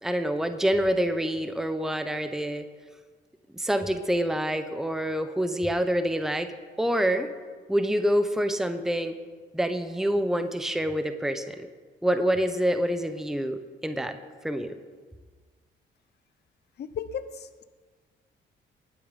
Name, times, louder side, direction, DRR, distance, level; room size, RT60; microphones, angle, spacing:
voice 1, 0.0-2.6 3.5-6.5 6.8-7.3 7.7-9.1 9.5-11.7 12.0-14.2 14.4-14.7, equal, ahead, 8 dB, 0.9 m, -26 dB
voice 2, 16.8-17.6, left 7 dB, 55° left, 12 dB, 0.8 m, -35 dB
20.0 x 8.7 x 5.3 m, 1.5 s
cardioid pair, 90°, 20 cm